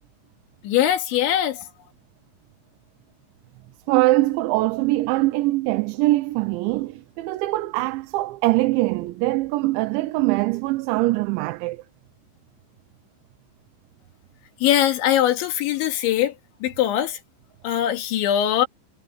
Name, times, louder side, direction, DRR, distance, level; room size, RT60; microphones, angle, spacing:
voice 1, 0.6-1.6 14.6-16.3 16.6-17.2 17.6-18.7, left 11 dB, 80° left, 4.4 m, -21 dB
voice 2, 3.9-11.8, right 19 dB, 85° right, 3.2 m, -22 dB
omnidirectional pair, 5.2 m